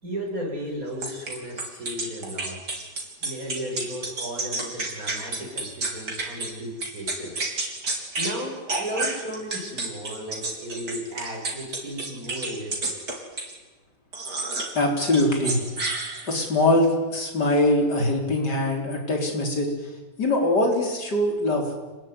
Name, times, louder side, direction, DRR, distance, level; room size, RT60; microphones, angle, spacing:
voice 1, 0.0-2.8 3.2-7.5 8.2-12.9, equal, 55° right, -1 dB, 7.8 m, -34 dB
sound 1, 1.0-6.5 6.8-8.4 8.7-13.5 14.1-14.7 15.0-16.5, right 3 dB, 70° right, 4.6 m, -30 dB
voice 2, 14.7-15.6 16.3-19.7 20.2-21.7, left 1 dB, 75° left, 2 dB, 4.9 m, -22 dB
27.0 x 20.0 x 9.9 m, 1.2 s
omnidirectional pair, 1.8 m